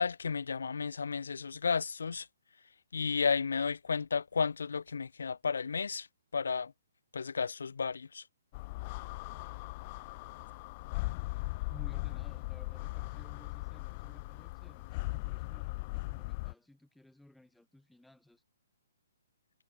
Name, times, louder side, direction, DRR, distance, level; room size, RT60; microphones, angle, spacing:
voice 1, 0.0-2.3 2.9-6.1 6.3-6.7 7.1-8.2, left 5 dB, 85° left, 0.6 m, -32 dB
sound 1, 8.5-16.5, left 23 dB, 35° left, 0.6 m, -39 dB
voice 2, 11.7-18.4, left 1 dB, ahead, 5.1 m, -57 dB
hypercardioid pair, 150°, 0 cm